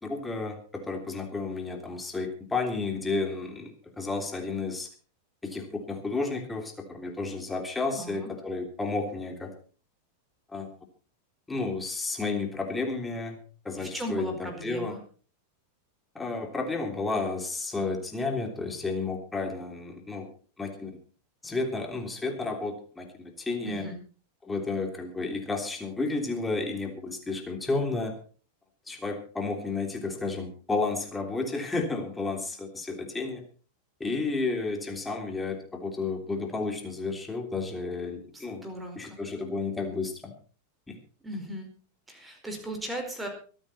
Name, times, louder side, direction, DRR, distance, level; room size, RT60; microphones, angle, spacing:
voice 1, 0.0-4.9 5.4-9.5 10.5-10.7 11.5-13.4 13.6-15.0 16.1-20.3 20.6-21.0 21.4-23.8 24.4-28.1 28.9-33.4 34.0-38.6 38.9-40.3 40.9-41.0, left 3 dB, 10° left, 4 dB, 3.3 m, -32 dB
voice 2, 7.9-8.3 13.8-15.0 23.6-24.0 38.3-39.2 41.2-41.7 42.1-43.3, right 1 dB, 10° right, 4 dB, 4.7 m, -37 dB
24.0 x 9.1 x 4.3 m, 0.39 s
figure-of-eight pair, 90°, 0 cm